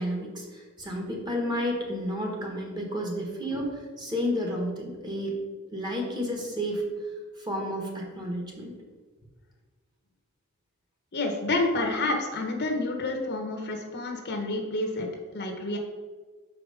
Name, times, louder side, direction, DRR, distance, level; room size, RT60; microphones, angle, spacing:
voice 1, 0.0-5.3 5.7-6.8 7.4-8.7, equal, 20° right, -1 dB, 1.3 m, -31 dB
voice 2, 11.1-15.1 15.3-15.8, left 2 dB, 50° left, 3 dB, 1.0 m, -29 dB
6.0 x 4.9 x 4.9 m, 1.4 s
head